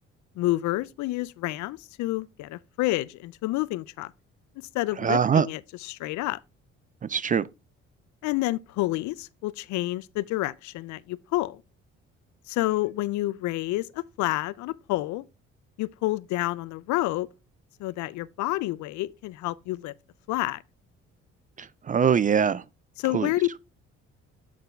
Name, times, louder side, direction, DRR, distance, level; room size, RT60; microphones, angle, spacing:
voice 1, 0.4-4.1 4.7-6.4 8.2-11.6 12.5-15.2 15.8-17.3 17.8-19.9 20.3-20.6 23.0-23.6, left 18 dB, 70° left, 0.4 m, -29 dB
voice 2, 5.0-5.5 7.1-7.5 21.6-22.6 23.1-23.3, right 7 dB, 30° right, 0.3 m, -23 dB
8.4 x 4.4 x 3.3 m
supercardioid pair, 60°, 30 cm